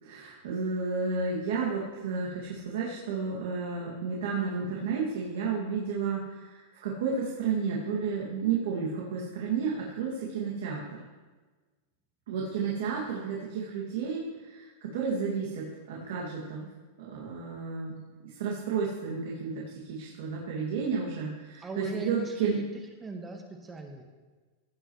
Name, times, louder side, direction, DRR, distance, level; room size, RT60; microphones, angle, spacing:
voice 1, 0.0-11.0 12.3-16.7 17.0-18.0 18.2-22.6, right 5 dB, 75° right, -4 dB, 2.2 m, -32 dB
voice 2, 21.6-22.6 23.0-24.0, right 2 dB, 15° right, 3 dB, 1.3 m, -38 dB
16.5 x 7.8 x 3.2 m, 1.4 s
supercardioid pair, 135°, 0 cm